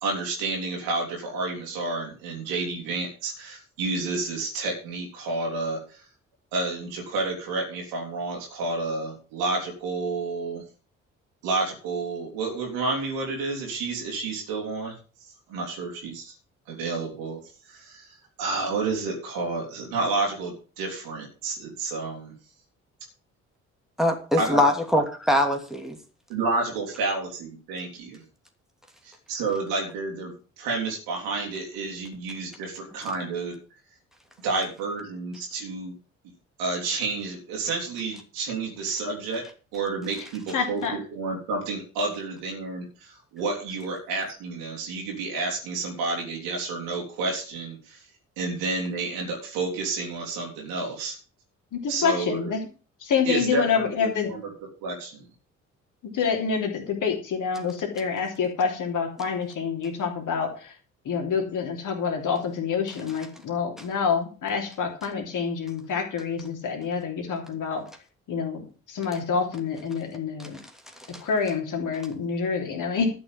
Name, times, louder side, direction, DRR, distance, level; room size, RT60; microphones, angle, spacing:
voice 1, 0.0-6.0 6.5-10.6 11.4-14.9 15.2-16.3 16.7-17.4 17.6-22.3 24.4-24.7 26.3-28.2 29.0-33.5 34.4-36.0 36.6-39.4 39.7-40.8 41.1-48.0 48.4-51.1 51.9-52.5 53.2-54.5 54.8-55.3, right 3 dB, 65° right, -1 dB, 3.4 m, -30 dB
voice 2, 24.0-26.0 71.1-71.2, left 1 dB, ahead, 3 dB, 2.9 m, -22 dB
voice 3, 40.5-41.0 51.7-52.6 53.0-54.3 56.1-60.7 61.0-67.8 68.3-70.6 71.2-73.1, left 6 dB, 50° left, 4 dB, 3.3 m, -27 dB
12.5 x 6.3 x 7.4 m, 0.38 s
figure-of-eight pair, 45°, 39 cm